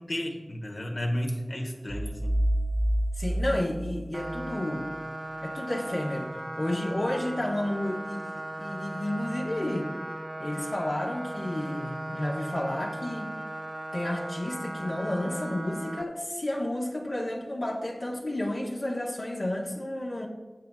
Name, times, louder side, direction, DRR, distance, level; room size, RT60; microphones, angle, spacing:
voice 1, 0.0-2.3, equal, 75° left, 1 dB, 1.4 m, -32 dB
sound 1, 1.9-4.6, right 1 dB, 25° left, 1.2 m, -28 dB
voice 2, 3.2-4.9 5.4-9.9 10.4-13.3 13.9-20.3, left 1 dB, 55° left, -2 dB, 1.0 m, -31 dB
sound 2, 4.1-16.0, right 1 dB, 35° right, 0.7 m, -37 dB
12.5 x 7.8 x 2.3 m, 1.3 s
wide cardioid pair, 50°, 0 cm